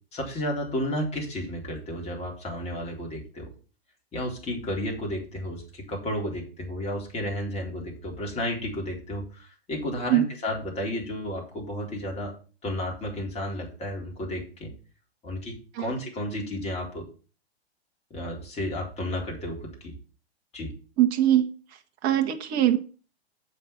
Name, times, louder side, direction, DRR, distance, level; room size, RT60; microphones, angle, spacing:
voice 1, 0.1-3.5 4.1-12.3 12.6-14.7 15.2-17.1 18.1-19.9 20.5-20.7, left 1 dB, 20° left, 0 dB, 3.8 m, -32 dB
voice 2, 21.0-21.5 22.0-22.8, right 12 dB, 25° right, 5 dB, 0.9 m, -21 dB
7.6 x 5.8 x 7.3 m, 0.37 s
hypercardioid pair, 120°, 32 cm